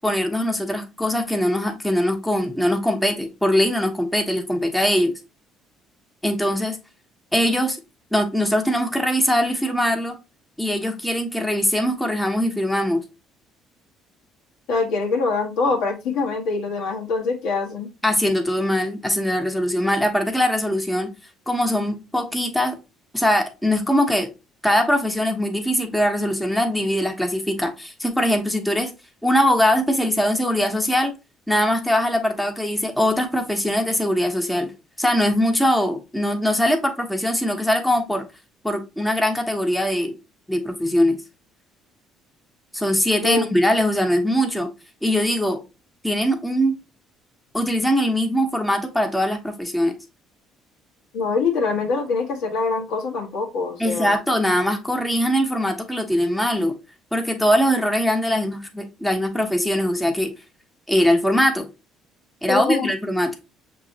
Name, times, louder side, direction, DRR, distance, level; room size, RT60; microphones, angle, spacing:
voice 1, 0.0-5.1 6.2-6.8 7.3-7.8 8.1-10.2 10.6-13.0 18.0-21.1 21.5-22.8 23.1-24.3 24.6-28.9 29.2-31.1 31.5-34.7 35.0-38.3 38.6-40.1 40.5-41.2 42.7-44.7 45.0-45.6 46.0-46.8 47.5-49.9 53.8-56.7 57.1-60.3 60.9-61.7 62.4-63.3, equal, 5° left, 1.1 m, -21 dB
voice 2, 14.7-17.9 43.2-43.5 51.1-54.2 62.5-62.9, left 4 dB, 80° left, 1.4 m, -24 dB
6.1 x 3.0 x 2.8 m
supercardioid pair, 85°, 0 cm